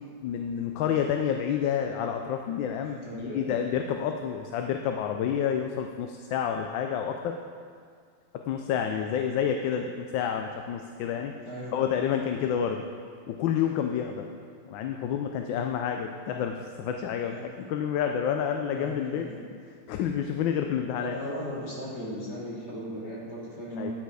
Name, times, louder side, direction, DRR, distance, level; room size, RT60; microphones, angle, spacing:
voice 1, 0.2-7.4 8.5-11.3 11.7-12.8 13.3-14.3 14.7-19.2 19.9-21.2 23.8-23.9, left 8 dB, 80° left, 4 dB, 1.3 m, -29 dB
voice 2, 2.8-3.6 11.4-11.9 17.2-17.5 18.7-19.4 21.0-23.9, equal, 60° left, -7 dB, 3.2 m, -37 dB
9.8 x 9.2 x 4.8 m, 2.1 s
omnidirectional pair, 2.1 m